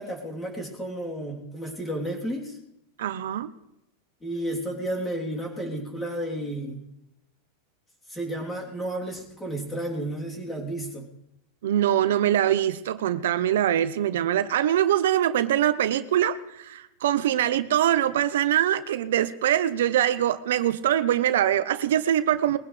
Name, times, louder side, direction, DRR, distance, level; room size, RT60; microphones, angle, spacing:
voice 1, 0.0-2.6 4.2-6.8 8.1-11.1, right 1 dB, 10° left, -2 dB, 3.4 m, -32 dB
voice 2, 3.0-3.5 11.6-22.6, right 11 dB, 80° right, 13 dB, 0.8 m, -23 dB
21.0 x 16.0 x 3.4 m, 0.85 s
supercardioid pair, 145°, 0 cm